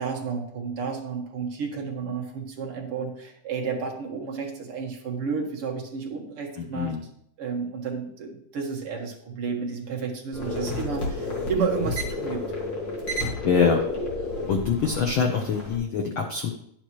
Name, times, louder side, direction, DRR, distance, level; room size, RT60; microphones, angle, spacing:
voice 1, 0.0-7.0 7.4-12.4, right 5 dB, 55° right, -1 dB, 2.3 m, -31 dB
sound 1, 10.3-15.8, left 2 dB, 40° left, 2.5 m, -31 dB
voice 2, 13.4-13.8 14.5-16.5, left 6 dB, 85° left, 2 dB, 1.1 m, -24 dB
11.0 x 8.7 x 3.1 m, 0.72 s
omnidirectional pair, 3.5 m